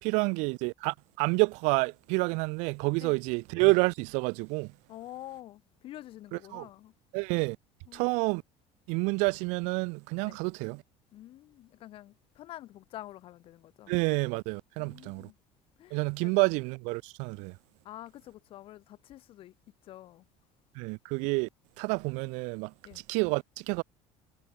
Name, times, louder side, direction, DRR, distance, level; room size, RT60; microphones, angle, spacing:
voice 1, 0.0-4.7 6.3-6.7 7.1-7.6 7.9-8.4 8.9-10.8 13.9-15.3 15.9-17.6 20.8-21.5 21.8-22.7 23.1-23.8, right 30 dB, 75° right, 0.5 m, -29 dB
voice 2, 4.9-6.9 7.9-8.0 10.2-10.4 11.1-14.0 14.8-15.4 15.8-16.5 17.8-19.5 19.8-20.2 22.8-23.0, left 14 dB, 50° left, 2.5 m, -47 dB
cardioid pair, 155°, 12 cm